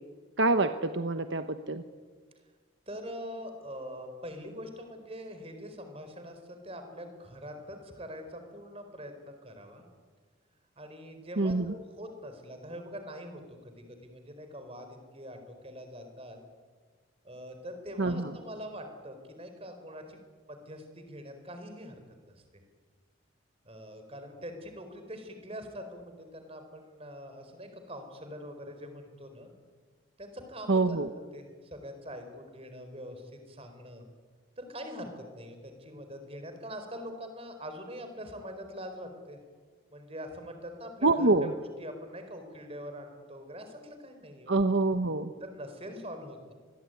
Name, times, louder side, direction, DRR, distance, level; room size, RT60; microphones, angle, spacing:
voice 1, 0.4-1.8 11.4-11.7 18.0-18.3 30.7-31.1 41.0-41.5 44.5-45.3, right 2 dB, 60° right, 8 dB, 1.0 m, -26 dB
voice 2, 2.9-9.9 10.8-13.7 14.0-15.4 15.6-16.4 17.2-20.2 20.5-22.0 22.3-22.4 23.6-29.5 30.2-31.0 31.3-34.0 34.6-39.4 39.9-41.3 41.8-44.5 45.4-46.5, equal, 30° right, 7 dB, 4.5 m, -43 dB
26.5 x 21.5 x 9.4 m, 1.5 s
head